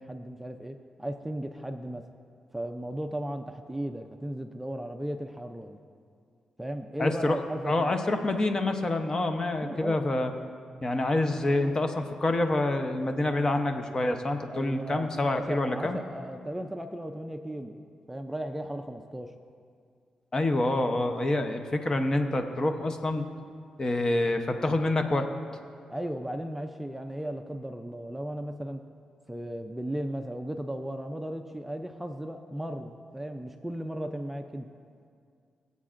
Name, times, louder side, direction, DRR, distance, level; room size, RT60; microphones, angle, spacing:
voice 1, 0.0-2.0 2.5-5.8 6.6-7.9 9.5-10.1 14.5-19.3 25.9-28.8 29.3-34.7, right 1 dB, 5° right, 5 dB, 0.5 m, -36 dB
voice 2, 7.0-7.4 7.6-10.3 10.8-16.0 20.3-23.2 23.8-25.3, left 2 dB, 30° left, 6 dB, 0.8 m, -27 dB
22.0 x 8.3 x 2.5 m, 2.2 s
cardioid pair, 90°, 2 cm